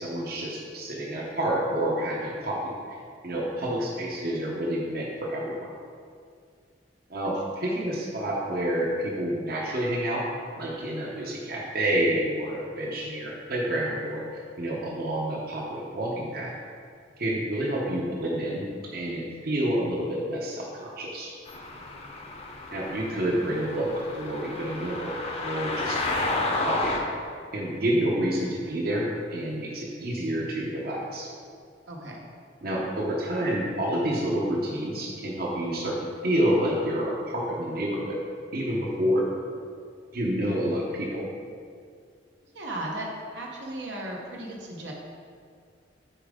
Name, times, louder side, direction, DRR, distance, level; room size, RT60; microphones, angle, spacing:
voice 1, 0.0-2.7 3.2-5.6 7.1-10.2 10.6-16.5 17.2-18.7 18.9-21.3 22.7-27.0 27.5-31.3 32.6-36.0 36.2-38.2 38.5-39.2 40.1-41.3, right 1 dB, 60° right, -3 dB, 0.9 m, -28 dB
voice 2, 7.3-7.8 21.8-22.0 31.9-32.2 42.5-43.1 43.3-44.9, right 1 dB, 85° right, -2 dB, 1.1 m, -37 dB
sound 1, 21.5-27.0, left 2 dB, 35° left, 0.7 m, -31 dB
6.9 x 5.1 x 3.7 m, 2.2 s
head